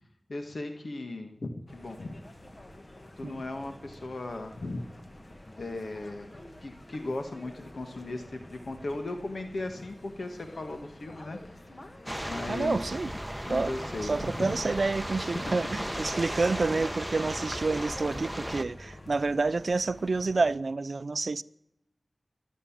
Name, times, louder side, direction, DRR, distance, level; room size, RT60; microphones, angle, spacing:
voice 1, 0.3-2.2 3.2-4.9 5.6-6.3 6.6-11.4 12.3-12.8 13.4-14.5 15.3-15.6, left 2 dB, 75° left, 1.7 m, -37 dB
sound 1, 1.7-20.6, left 1 dB, 35° left, 1.8 m, -49 dB
sound 2, 12.1-18.6, equal, 5° right, 1.1 m, -36 dB
voice 2, 12.5-13.1 13.5-13.7 14.0-21.4, right 3 dB, 75° right, 0.5 m, -29 dB
23.0 x 8.2 x 7.4 m
wide cardioid pair, 55°, 0 cm